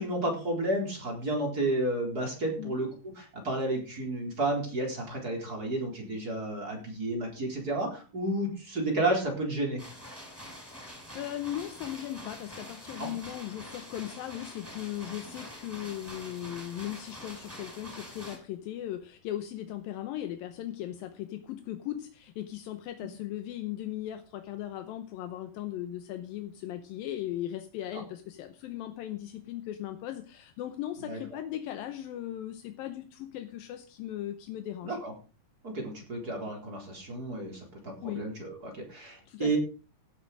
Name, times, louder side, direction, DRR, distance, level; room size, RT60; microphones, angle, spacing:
voice 1, 0.0-2.9 3.2-9.8 13.0-13.1 31.0-31.2 34.8-35.1 35.6-39.6, right 1 dB, 25° right, 1 dB, 4.4 m, -31 dB
sound 1, 9.8-18.4, equal, 5° right, 6.4 m, -45 dB
voice 2, 10.7-35.0 38.0-38.3 39.3-39.6, left 12 dB, 80° left, 8 dB, 2.6 m, -38 dB
16.0 x 8.1 x 5.1 m, 0.36 s
omnidirectional pair, 4.2 m